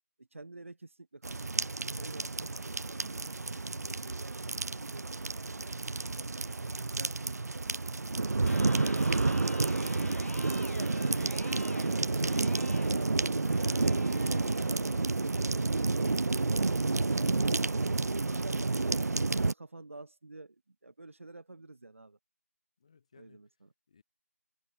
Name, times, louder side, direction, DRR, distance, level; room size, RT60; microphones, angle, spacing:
voice 1, 0.2-8.1 8.4-10.2 10.5-15.3 15.7-16.2 17.4-22.2 23.1-23.7, right 2 dB, 55° right, 4.9 m, -49 dB
sound 1, 1.2-19.5, right 3 dB, 75° right, 0.4 m, -30 dB
Electric guitar, 8.4-16.4, left 2 dB, 60° left, 4.3 m, -47 dB
voice 2, 22.8-23.4 23.9-24.0, left 6 dB, 20° left, 2.1 m, -62 dB
figure-of-eight pair, 170°, 9 cm